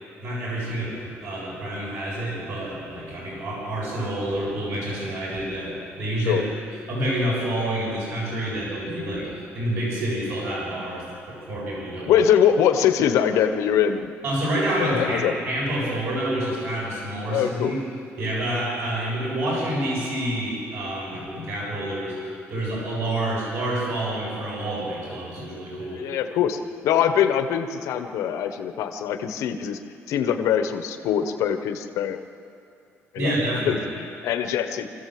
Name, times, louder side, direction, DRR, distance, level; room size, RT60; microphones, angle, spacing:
voice 1, 0.2-6.4 6.9-12.2 14.2-17.8 18.2-26.0 33.2-33.9, right 1 dB, 60° right, -4 dB, 7.0 m, -28 dB
voice 2, 12.0-14.1 14.8-15.3 17.3-17.7 26.0-29.8 30.1-32.2 33.1-33.4 33.7-35.0, left 9 dB, 85° left, 7 dB, 1.2 m, -23 dB
25.0 x 15.0 x 7.8 m, 2.6 s
cardioid pair, 165°, 5 cm